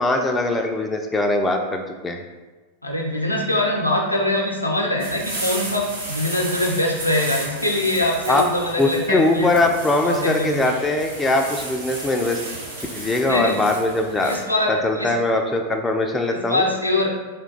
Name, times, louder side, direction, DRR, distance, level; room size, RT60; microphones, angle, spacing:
voice 1, 0.0-2.2 8.3-8.4 8.8-12.4 12.9-14.3 14.7-16.7, left 2 dB, 10° left, 3 dB, 0.3 m, -21 dB
voice 2, 2.8-9.5 10.0-10.6 13.2-13.6 14.2-15.1 16.3-17.1, left 1 dB, 85° left, -1 dB, 0.5 m, -23 dB
sound 1, 5.0-14.4, right 1 dB, 70° right, 0.9 m, -33 dB
2.7 x 2.2 x 3.8 m, 1.2 s
figure-of-eight pair, 90°, 0 cm